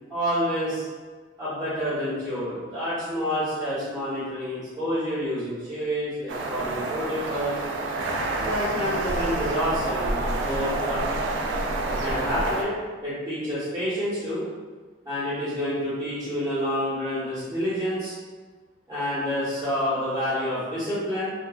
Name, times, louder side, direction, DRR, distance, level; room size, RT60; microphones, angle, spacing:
voice 1, 0.1-0.8 1.4-7.6 8.4-11.0 11.8-12.7 13.0-14.4 15.0-18.1 18.9-21.3, equal, 20° right, -13 dB, 1.1 m, -28 dB
sound 1, 6.3-12.6, right 2 dB, 75° right, 0.4 m, -28 dB
2.9 x 2.3 x 2.3 m, 1.4 s
head